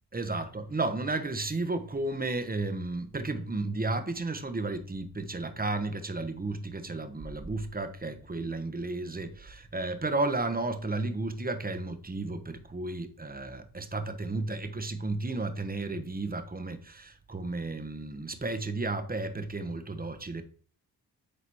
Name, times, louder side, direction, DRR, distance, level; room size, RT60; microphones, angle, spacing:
voice 1, 0.1-20.4, right 2 dB, 20° right, 1.1 m, -33 dB
9.6 x 4.0 x 3.1 m
supercardioid pair, 45°, 41 cm